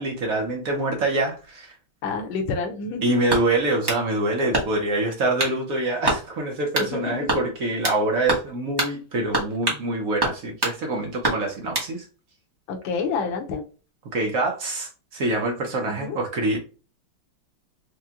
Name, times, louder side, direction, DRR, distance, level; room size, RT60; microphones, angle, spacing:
voice 1, 0.0-1.7 3.0-12.1 14.1-16.6, right 2 dB, 65° right, 0.8 m, -25 dB
voice 2, 2.0-3.2 6.8-7.3 12.7-13.6 15.8-16.2, left 4 dB, 70° left, 1.5 m, -28 dB
sound 1, 3.3-4.0 4.5-4.9 5.4-5.6 6.0-6.2 6.7-6.9 7.3-8.0 8.3-8.5 8.8-8.9 9.3-9.8 10.2-10.8 11.2-11.9, right 2 dB, 30° right, 0.4 m, -25 dB
4.8 x 2.2 x 2.8 m
omnidirectional pair, 2.4 m